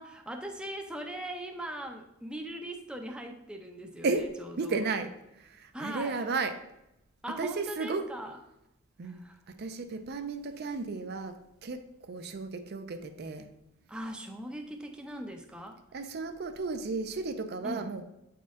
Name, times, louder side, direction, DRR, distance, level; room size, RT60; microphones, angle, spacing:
voice 1, 0.0-4.3 4.6-4.8 5.7-6.2 7.2-8.4 9.0-9.4 13.9-15.8 17.6-17.9, right 1 dB, 5° right, 3 dB, 0.5 m, -40 dB
voice 2, 4.6-6.6 7.4-8.1 9.0-13.5 15.9-18.0, right 3 dB, 50° right, 8 dB, 0.5 m, -34 dB
8.3 x 4.3 x 3.6 m, 0.87 s
head